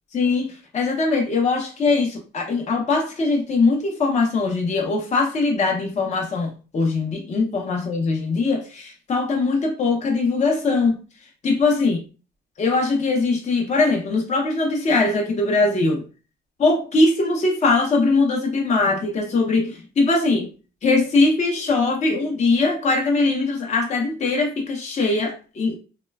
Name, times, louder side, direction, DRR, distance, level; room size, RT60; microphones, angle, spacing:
voice 1, 0.1-11.0 11.4-12.0 12.6-16.0 16.6-20.5 20.8-25.8, left 3 dB, 35° left, 0.6 m, -21 dB
3.0 x 2.1 x 2.2 m
cardioid pair, 90°, 20 cm